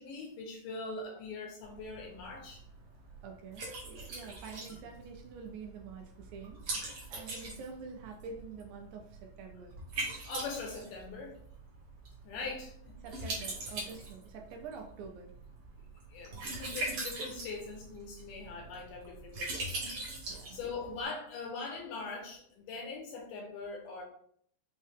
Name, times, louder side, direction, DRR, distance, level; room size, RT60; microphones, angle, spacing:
voice 1, 0.0-2.6 10.2-11.4 12.2-13.0 16.1-19.8 20.2-24.0, left 4 dB, 80° left, -1 dB, 2.2 m, -42 dB
Liquid, 1.6-21.1, right 2 dB, 55° right, 1.6 m, -42 dB
voice 2, 3.2-6.6 7.1-9.8 12.4-12.6 13.0-15.3 20.3-20.6, right 5 dB, 80° right, 3 dB, 1.9 m, -47 dB
5.5 x 2.1 x 3.3 m, 0.63 s
omnidirectional pair, 4.0 m